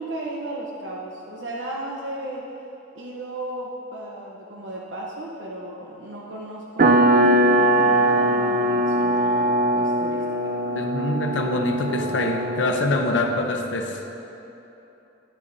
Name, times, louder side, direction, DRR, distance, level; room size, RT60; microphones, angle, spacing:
voice 1, 0.0-2.5 2.9-10.5, right 1 dB, 85° right, -3 dB, 0.9 m, -35 dB
sound 1, 6.8-13.0, right 1 dB, 50° right, 0.5 m, -21 dB
voice 2, 10.7-14.0, left 2 dB, 90° left, 3 dB, 0.7 m, -24 dB
12.0 x 11.0 x 2.7 m, 2.9 s
head